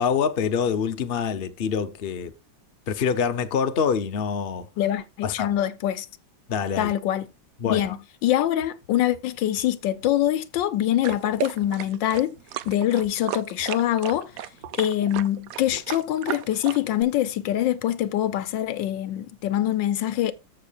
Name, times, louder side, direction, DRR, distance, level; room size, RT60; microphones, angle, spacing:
voice 1, 0.0-2.3 2.9-4.7 5.2-5.6 6.5-6.9 7.6-8.0, left 6 dB, 45° left, 0.8 m, -25 dB
voice 2, 4.8-6.1 6.8-7.3 7.6-12.3 12.7-14.3 14.8-20.3, left 12 dB, 75° left, 1.3 m, -24 dB
sound 1, 8.3-10.3 10.5-14.4 14.6-16.0, left 7 dB, 50° right, 4.6 m, -50 dB
sound 2, 11.0-17.0, right 12 dB, 90° right, 0.7 m, -34 dB
14.0 x 6.5 x 2.4 m
omnidirectional pair, 2.1 m